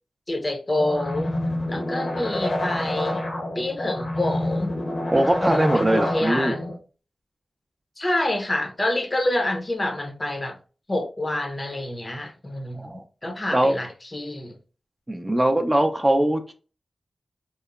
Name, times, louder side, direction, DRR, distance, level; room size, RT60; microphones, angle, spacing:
voice 1, 0.3-1.3 1.7-3.2 3.6-4.7 5.2-6.7 8.0-10.6 10.9-14.6, left 1 dB, 35° left, 0.6 m, -27 dB
sound 1, 0.8-6.8, left 1 dB, 70° left, 0.9 m, -28 dB
voice 2, 5.1-6.5 12.7-13.0 13.5-13.8 15.1-16.5, right 1 dB, 25° right, 0.4 m, -21 dB
2.9 x 2.0 x 2.3 m
cardioid pair, 45°, 0 cm